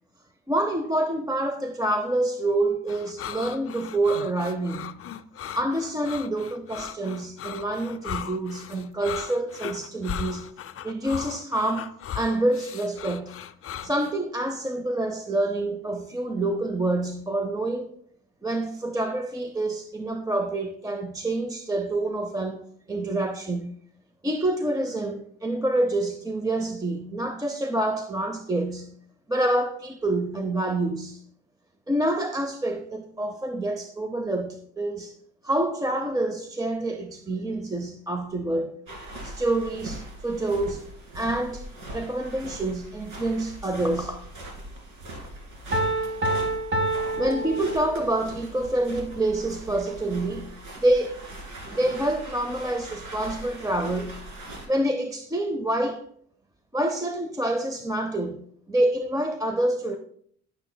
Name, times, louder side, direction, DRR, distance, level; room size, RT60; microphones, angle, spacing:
voice 1, 0.5-5.0 5.4-10.5 10.8-11.9 12.1-13.4 13.8-17.9 18.4-22.6 22.9-23.8 24.2-28.9 29.3-31.2 31.9-35.1 35.4-38.7 39.2-40.8 41.1-41.6 41.9-44.2 47.2-51.2 51.7-54.2 54.7-56.0 56.7-60.0, right 1 dB, 10° right, 6 dB, 0.6 m, -27 dB
sound 1, 2.9-14.1, left 8 dB, 50° left, 0.5 m, -37 dB
sound 2, 38.9-54.7, right 1 dB, 80° right, 2.3 m, -41 dB
Piano, 45.7-48.3, right 2 dB, 40° right, 1.6 m, -27 dB
11.5 x 6.7 x 2.2 m, 0.62 s
cardioid pair, 90°, 30 cm